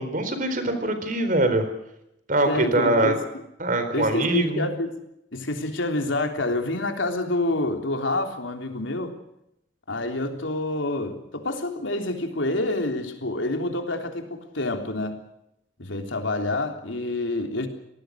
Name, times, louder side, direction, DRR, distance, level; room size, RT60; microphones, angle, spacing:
voice 1, 0.0-1.7 2.3-3.2 3.6-4.7, right 2 dB, 45° right, 9 dB, 4.1 m, -23 dB
voice 2, 2.5-3.2 3.9-5.0 5.3-9.1 9.9-15.2 15.8-17.7, left 2 dB, 85° left, 5 dB, 3.6 m, -27 dB
26.5 x 18.5 x 6.4 m, 0.82 s
head